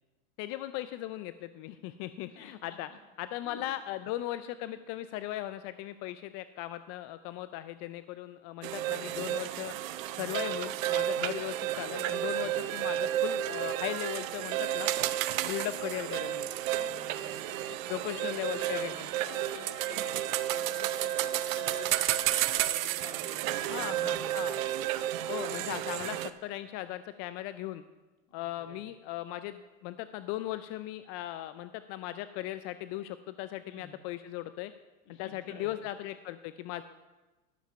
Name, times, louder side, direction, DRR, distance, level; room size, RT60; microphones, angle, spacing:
voice 1, 0.4-2.9 3.2-9.7 10.1-14.9 15.4-16.5 17.9-19.1 23.7-24.6 25.3-27.8 28.3-34.7 35.2-36.8, left 14 dB, 40° left, 12 dB, 0.4 m, -38 dB
voice 2, 2.3-3.0 3.4-3.6 4.6-4.8 12.3-12.7 16.8-24.0 24.2-24.7 28.3-28.8 33.6-34.0 35.0-35.9, left 4 dB, 55° left, 2 dB, 2.6 m, -50 dB
sound 1, 8.6-26.3, right 13 dB, 65° right, 0.8 m, -32 dB
12.5 x 7.2 x 5.6 m, 1.2 s
hypercardioid pair, 110°, 43 cm